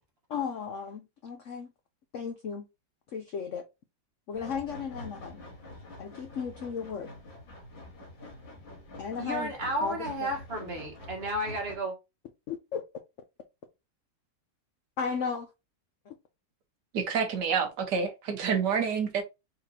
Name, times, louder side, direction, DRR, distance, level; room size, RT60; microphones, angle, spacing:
voice 1, 0.3-1.7 2.1-2.7 3.1-3.6 4.3-5.4 6.0-7.1 9.0-9.5 9.8-10.0 12.5-12.8 15.0-15.5 16.1-16.2, left 6 dB, 70° left, 0.7 m, -35 dB
sound 1, 4.3-11.8, left 1 dB, 90° left, 2.6 m, -46 dB
voice 2, 9.2-12.0, right 1 dB, 35° right, 1.4 m, -32 dB
voice 3, 16.9-19.2, right 6 dB, 70° right, 1.4 m, -28 dB
4.6 x 3.8 x 2.8 m
omnidirectional pair, 2.0 m